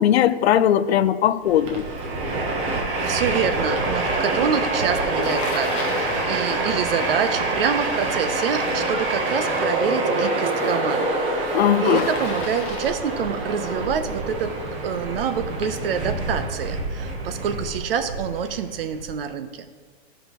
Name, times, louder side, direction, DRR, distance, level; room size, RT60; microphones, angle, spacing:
voice 1, 0.0-1.9 11.5-12.1, left 11 dB, 85° left, 0.5 m, -19 dB
Train, 1.4-19.0, right 2 dB, 20° right, 0.9 m, -26 dB
voice 2, 3.0-11.1 11.4-14.5 14.8-19.7, right 7 dB, 65° right, 0.8 m, -26 dB
Bicycle, 5.2-6.3 11.8-13.1, left 4 dB, 20° left, 0.8 m, -34 dB
13.5 x 5.0 x 3.0 m
supercardioid pair, 165°, 31 cm